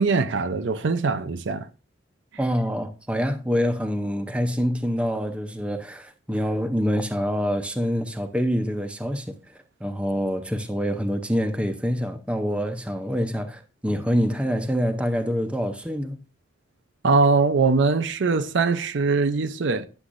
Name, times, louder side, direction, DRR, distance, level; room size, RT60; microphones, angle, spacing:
voice 1, 0.0-1.7 17.0-19.9, right 4 dB, 70° right, 0.5 m, -22 dB
voice 2, 2.4-9.4 9.8-16.2, equal, 5° right, 0.6 m, -26 dB
9.9 x 7.0 x 2.5 m
head